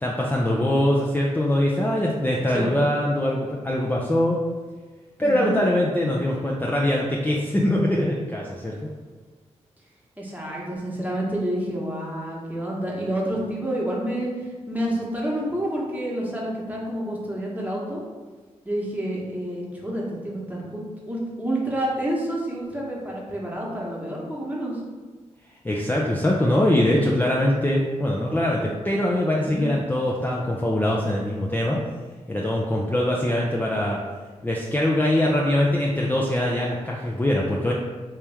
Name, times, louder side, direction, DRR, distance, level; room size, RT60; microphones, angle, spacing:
voice 1, 0.0-4.4 5.2-8.8 25.6-31.8 32.3-34.0 34.4-37.7, left 1 dB, 15° left, -3 dB, 0.5 m, -23 dB
voice 2, 5.2-5.5 10.2-18.0 18.6-20.8 21.1-24.8 29.4-29.7, right 1 dB, 15° right, -4 dB, 1.2 m, -29 dB
3.3 x 2.9 x 3.4 m, 1.4 s
cardioid pair, 50°, 13 cm